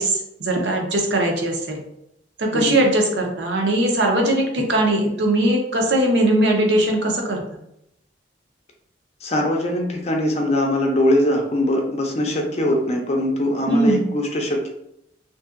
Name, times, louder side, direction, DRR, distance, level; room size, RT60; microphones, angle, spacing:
voice 1, 0.0-1.8 2.4-7.6 13.7-14.1, right 1 dB, 70° right, 1 dB, 0.6 m, -20 dB
voice 2, 9.2-14.7, left 1 dB, 35° left, 1 dB, 0.5 m, -21 dB
2.6 x 2.6 x 2.4 m, 0.79 s
head